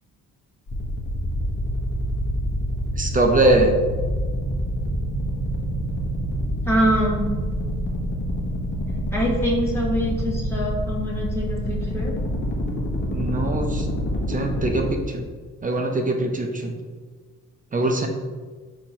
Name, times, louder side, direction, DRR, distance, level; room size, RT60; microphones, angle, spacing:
sound 1, 0.7-14.9, equal, 35° left, 0.9 m, -26 dB
voice 1, 3.0-3.8 13.1-13.8 14.3-15.2 15.6-16.7 17.7-18.1, right 2 dB, 25° right, 3 dB, 0.6 m, -22 dB
voice 2, 6.7-7.3 9.1-12.1, equal, 10° left, -4 dB, 1.1 m, -24 dB
4.3 x 2.7 x 4.3 m, 1.5 s
cardioid pair, 90°, 30 cm